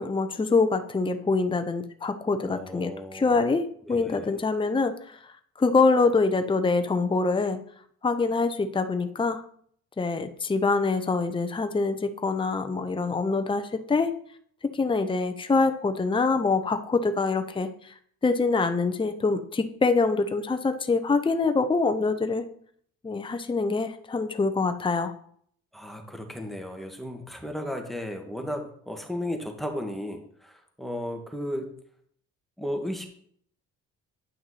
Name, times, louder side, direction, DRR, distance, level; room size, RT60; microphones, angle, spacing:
voice 1, 0.0-5.2 5.6-7.6 8.0-9.4 10.0-14.1 14.7-17.9 18.2-22.5 23.0-25.1, left 3 dB, 15° left, 8 dB, 0.7 m, -25 dB
voice 2, 2.5-3.4 3.8-4.3 25.7-31.7 32.6-33.1, equal, ahead, 4 dB, 1.5 m, -34 dB
9.4 x 5.8 x 4.2 m, 0.62 s
cardioid pair, 90°, 30 cm